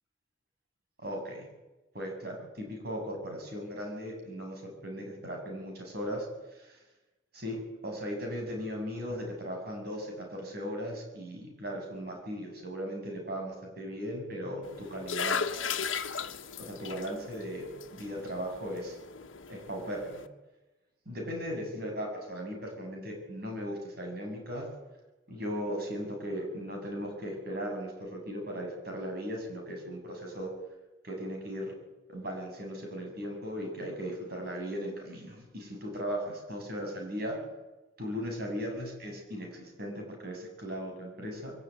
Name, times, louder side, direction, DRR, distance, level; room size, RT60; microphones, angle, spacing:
voice 1, 1.0-1.5 1.9-6.3 6.5-6.8 7.3-15.4 16.6-17.7 17.9-19.0 19.5-20.2 21.1-24.7 25.3-30.5 31.0-31.7 32.1-37.4 38.0-41.5, equal, 50° right, 2 dB, 7.2 m, -37 dB
sound 1, 14.6-20.3, left 6 dB, 85° left, 1.4 m, -37 dB
23.0 x 16.5 x 9.7 m, 1.1 s
head